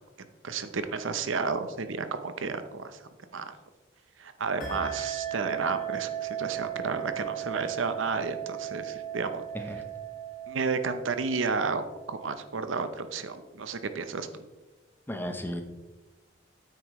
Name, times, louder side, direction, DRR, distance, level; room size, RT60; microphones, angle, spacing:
voice 1, 0.4-3.0 3.3-3.5 4.2-9.4 10.5-11.8 12.1-14.4, right 4 dB, 75° right, 10 dB, 0.7 m, -32 dB
sound 1, 4.6-12.7, right 10 dB, 45° left, 1.8 m, -37 dB
voice 2, 15.1-15.6, equal, 10° left, 5 dB, 0.8 m, -34 dB
9.4 x 8.6 x 3.1 m, 1.2 s
head